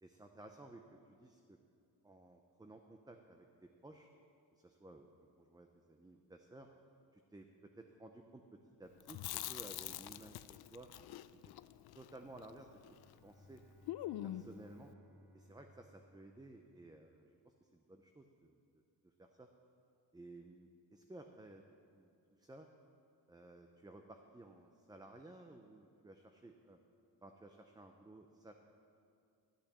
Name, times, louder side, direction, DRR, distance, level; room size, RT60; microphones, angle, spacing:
voice 1, 0.0-1.6 2.0-3.5 3.8-4.1 4.5-5.1 5.4-6.7 7.1-7.5 7.8-8.4 8.8-10.9 11.9-12.7 13.2-13.6 14.2-14.9 15.3-18.6 19.0-19.5 20.1-21.6 21.9-22.1 22.4-22.7 23.3-26.8 27.2-28.5, right 2 dB, 10° right, 4 dB, 0.6 m, -56 dB
Chewing mastication, 9.0-13.2 13.4-13.5 13.9-14.6, left 14 dB, 85° left, 0.5 m, -45 dB
Bowed string instrument, 12.9-17.6, equal, 80° right, 2.1 m, -64 dB
12.5 x 8.7 x 6.8 m, 2.5 s
cardioid pair, 125°, 37 cm